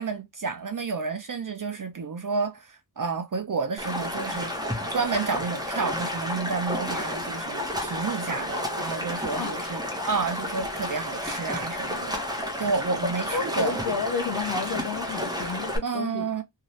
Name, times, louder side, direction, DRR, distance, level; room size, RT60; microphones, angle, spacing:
voice 1, 0.0-4.5 4.9-12.2 12.6-13.8 15.8-16.4, right 4 dB, 45° right, 0.5 m, -30 dB
Stream, 3.8-15.8, left 1 dB, 10° right, 0.8 m, -31 dB
voice 2, 13.0-16.3, left 5 dB, 55° left, 0.5 m, -31 dB
2.7 x 2.3 x 3.0 m
wide cardioid pair, 70°, 47 cm